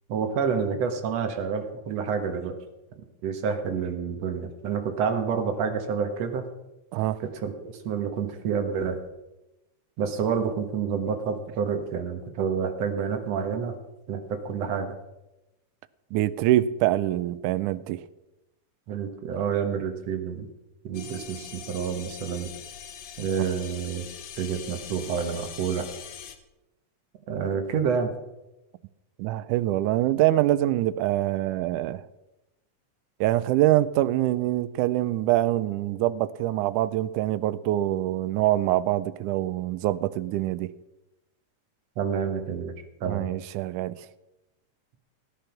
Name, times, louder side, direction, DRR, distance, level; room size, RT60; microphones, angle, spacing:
voice 1, 0.1-2.6 3.2-6.4 7.2-7.5 7.8-9.0 10.0-13.8 14.1-14.9 18.9-20.5 20.8-22.5 23.2-24.1 24.4-25.8 27.3-28.1 42.0-42.7 43.0-43.3, right 6 dB, 60° right, 2.4 m, -28 dB
voice 2, 16.1-18.0 29.2-32.0 33.2-40.7 43.1-44.0, right 14 dB, 85° right, 2.1 m, -24 dB
sound 1, 20.9-26.4, left 8 dB, 60° left, 1.9 m, -42 dB
16.0 x 10.0 x 5.9 m
omnidirectional pair, 3.5 m